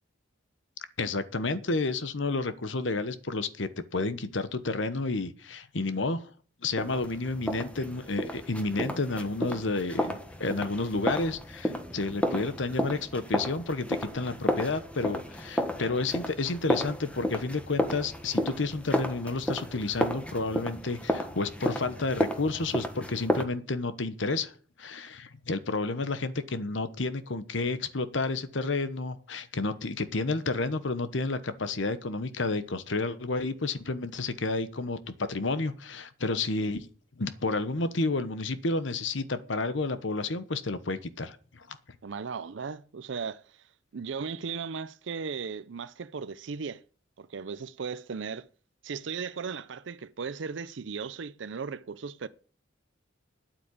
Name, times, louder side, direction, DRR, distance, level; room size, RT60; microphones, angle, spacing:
voice 1, 1.0-6.2 6.6-24.5 24.8-36.9 37.2-41.8, left 3 dB, 70° left, 1.1 m, -31 dB
sound 1, 6.8-23.4, equal, 5° left, 1.3 m, -32 dB
voice 2, 42.0-43.6 43.9-46.8 47.2-48.5 48.8-52.3, right 5 dB, 65° right, 0.5 m, -36 dB
9.2 x 8.5 x 8.5 m
head